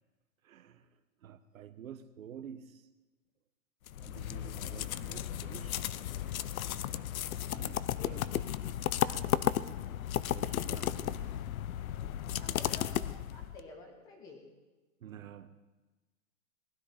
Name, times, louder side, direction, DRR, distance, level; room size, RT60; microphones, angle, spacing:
voice 1, 0.4-0.9 1.2-2.8 4.0-6.0 7.5-8.2 10.3-11.3 15.0-15.5, right 8 dB, 75° right, 1.1 m, -49 dB
sound 1, 3.9-13.6, left 11 dB, 80° left, 0.7 m, -34 dB
voice 2, 8.0-8.5 8.9-9.5 12.3-14.4, left 2 dB, 10° left, 0.8 m, -50 dB
19.5 x 12.5 x 4.3 m
hypercardioid pair, 180°, 41 cm